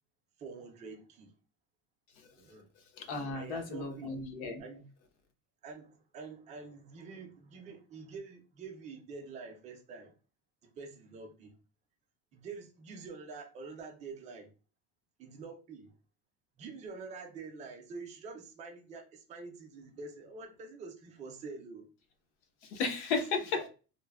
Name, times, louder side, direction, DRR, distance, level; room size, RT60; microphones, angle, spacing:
voice 1, 0.4-1.3 2.4-2.7 3.3-4.1 4.6-4.9 5.6-10.1 10.6-11.5 12.3-14.5 15.2-15.9 16.6-21.9 23.5-23.7, right 4 dB, 20° right, 0.4 m, -46 dB
voice 2, 3.0-4.6 22.7-23.6, left 4 dB, 70° left, 0.8 m, -34 dB
3.1 x 2.0 x 2.2 m
cardioid pair, 175°, 36 cm